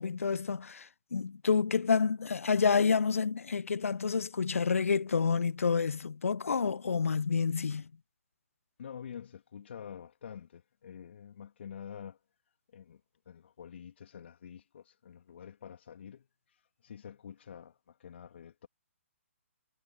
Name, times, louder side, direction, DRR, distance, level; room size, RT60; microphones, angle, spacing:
voice 1, 0.0-7.9, left 5 dB, 75° left, 0.4 m, -29 dB
voice 2, 8.8-12.2 12.7-13.0 13.3-18.7, left 8 dB, 55° left, 2.3 m, -47 dB
figure-of-eight pair, 130°, 7 cm